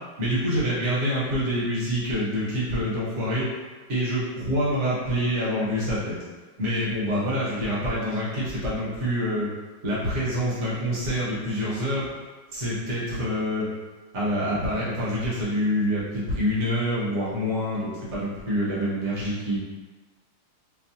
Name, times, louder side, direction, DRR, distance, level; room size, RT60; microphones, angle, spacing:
voice 1, 0.2-3.5 3.9-6.1 6.6-9.5 9.8-12.1 12.5-13.7 14.1-19.6, equal, 45° right, -8 dB, 1.2 m, -26 dB
4.6 x 2.1 x 2.7 m, 1.3 s
omnidirectional pair, 2.1 m